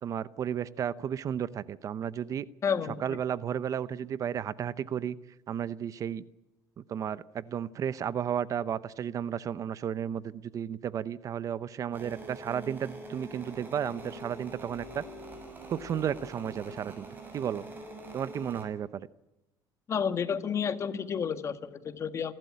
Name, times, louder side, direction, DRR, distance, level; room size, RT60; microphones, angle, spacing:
voice 1, 0.0-2.5 3.0-5.2 5.5-6.2 6.8-15.0 15.7-17.1 17.3-17.6 18.1-19.1, right 9 dB, 45° right, 17 dB, 0.8 m, -33 dB
voice 2, 2.6-3.0 19.9-22.3, left 7 dB, 40° left, 10 dB, 1.6 m, -30 dB
sound 1, 11.9-18.6, right 1 dB, 25° right, 7.1 m, -44 dB
28.0 x 12.5 x 9.9 m, 0.95 s
cardioid pair, 110°, 8 cm